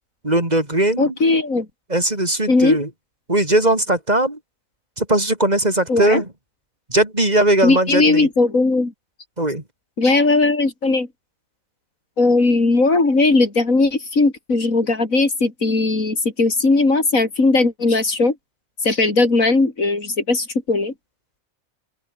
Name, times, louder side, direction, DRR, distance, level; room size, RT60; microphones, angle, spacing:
voice 1, 0.2-1.1 1.9-2.9 3.3-4.4 5.0-6.3 6.9-8.3 9.4-9.6, right 1 dB, 30° right, 4.9 m, -19 dB
voice 2, 1.0-1.7 2.5-2.8 5.9-6.2 7.6-8.9 10.0-11.1 12.2-18.3 18.8-20.9, left 3 dB, 70° left, 4.5 m, -18 dB
open air
omnidirectional pair, 1.5 m